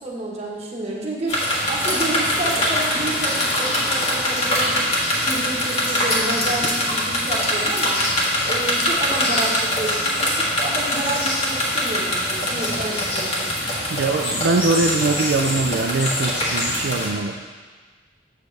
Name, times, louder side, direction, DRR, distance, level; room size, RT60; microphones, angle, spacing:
voice 1, 0.0-1.4 1.7-4.9 5.2-8.0 8.4-13.5, right 2 dB, 35° right, -3 dB, 1.3 m, -30 dB
sound 1, 1.3-17.1, left 1 dB, 35° left, 1.6 m, -23 dB
sound 2, 6.4-7.4 7.7-8.0 8.3-10.4, left 3 dB, 75° left, 0.6 m, -36 dB
voice 2, 13.9-17.4, right 3 dB, 75° right, 3 dB, 0.4 m, -22 dB
8.2 x 6.6 x 3.3 m, 1.4 s
head